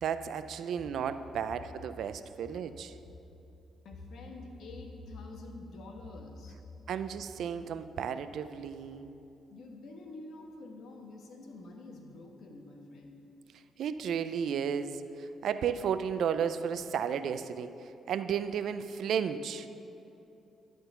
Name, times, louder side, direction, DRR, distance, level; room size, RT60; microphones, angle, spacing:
voice 1, 0.0-2.9 6.9-9.1 13.8-15.0 15.4-17.7 18.1-19.7, right 7 dB, 70° right, 11 dB, 0.4 m, -33 dB
voice 2, 3.8-6.6 9.5-13.2, left 2 dB, 65° left, 2 dB, 1.1 m, -47 dB
11.5 x 3.8 x 6.9 m, 2.9 s
cardioid pair, 90°, 0 cm